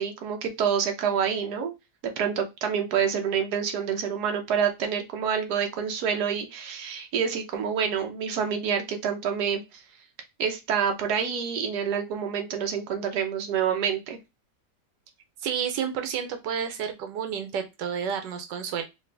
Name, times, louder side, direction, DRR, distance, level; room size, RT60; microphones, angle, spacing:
voice 1, 0.0-1.7 2.2-9.8 10.4-14.2, right 7 dB, 70° right, 4 dB, 1.4 m, -27 dB
voice 2, 15.4-18.8, right 7 dB, 90° right, 6 dB, 1.4 m, -30 dB
4.9 x 2.6 x 3.3 m, 0.22 s
omnidirectional pair, 1.8 m